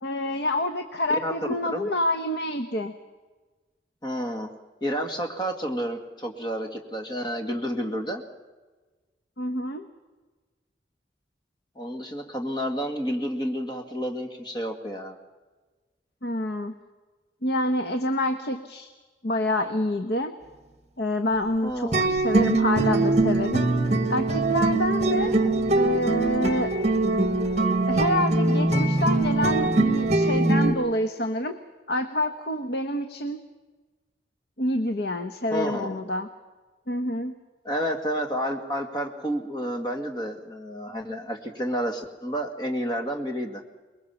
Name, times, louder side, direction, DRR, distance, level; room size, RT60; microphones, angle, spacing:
voice 1, 0.0-2.9 9.4-9.9 16.2-16.7 17.4-18.9 19.2-20.3 21.0-23.7 24.1-25.3 25.7-26.7 27.9-31.6 31.9-33.4 34.6-36.3 36.9-37.3, left 1 dB, 65° left, 8 dB, 1.1 m, -27 dB
voice 2, 4.0-4.5 4.8-8.2 11.8-15.2 21.6-22.0 25.2-25.6 35.5-36.0 37.6-43.6, equal, 25° left, 4 dB, 2.1 m, -30 dB
sound 1, 21.9-30.7, right 2 dB, 40° right, 1.6 m, -22 dB
23.0 x 21.5 x 7.1 m, 1.3 s
head